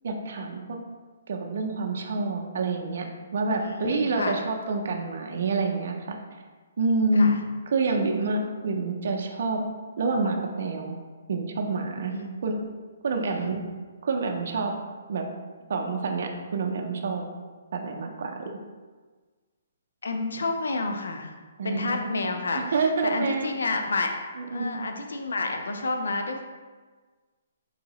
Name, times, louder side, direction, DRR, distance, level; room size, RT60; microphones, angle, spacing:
voice 1, 0.0-0.8 1.3-3.1 3.3-6.2 6.8-7.4 7.7-9.6 10.0-11.0 11.3-12.1 12.4-12.6 13.0-13.6 14.0-14.7 15.1-15.3 15.7-17.2 17.7-18.5 21.6-22.2 22.5-23.6 24.5-24.9, right 3 dB, 60° right, 2 dB, 0.4 m, -27 dB
voice 2, 3.5-4.4 7.1-7.4 12.1-12.3 13.3-13.5 20.0-21.3 21.6-22.6 23.0-24.1 24.5-26.4, left 3 dB, 90° left, 4 dB, 0.4 m, -30 dB
4.0 x 2.7 x 2.9 m, 1.4 s
hypercardioid pair, 160°, 0 cm